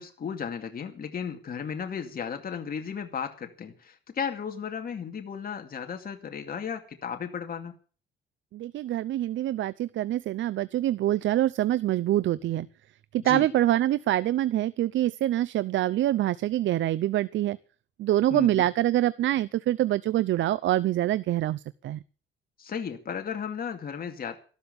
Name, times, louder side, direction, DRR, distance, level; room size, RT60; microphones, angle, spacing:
voice 1, 0.0-7.7 13.2-13.5 18.3-18.7 22.6-24.4, left 7 dB, 50° left, 4 dB, 2.4 m, -34 dB
voice 2, 8.5-12.7 13.1-17.6 18.0-22.0, right 13 dB, 70° right, 18 dB, 0.6 m, -25 dB
14.0 x 12.5 x 7.0 m, 0.40 s
cardioid pair, 90°, 20 cm